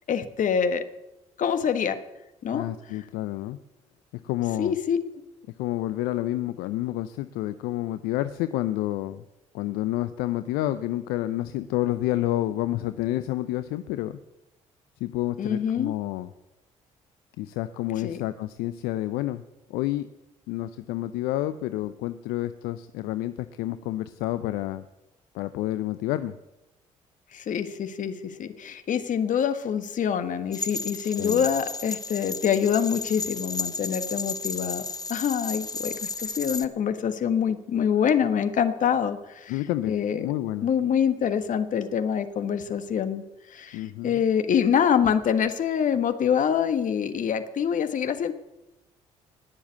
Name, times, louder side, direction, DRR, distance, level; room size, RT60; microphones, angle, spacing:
voice 1, 0.1-0.8 1.4-2.0 2.4-2.7 4.6-5.0 15.4-15.9 18.0-18.2 27.3-34.8 35.1-39.6 39.9-40.3 40.6-48.3, left 8 dB, 55° left, 9 dB, 1.5 m, -25 dB
voice 2, 2.5-3.6 4.2-4.7 5.6-9.2 9.5-14.2 15.0-16.3 17.4-19.4 19.7-20.1 20.5-24.8 25.3-26.3 31.2-31.5 39.5-40.7 43.7-44.2, left 15 dB, 70° left, 12 dB, 0.6 m, -29 dB
sound 1, 30.5-36.7, left 3 dB, 25° left, 1.2 m, -33 dB
19.5 x 7.2 x 8.2 m, 0.96 s
hypercardioid pair, 50°, 16 cm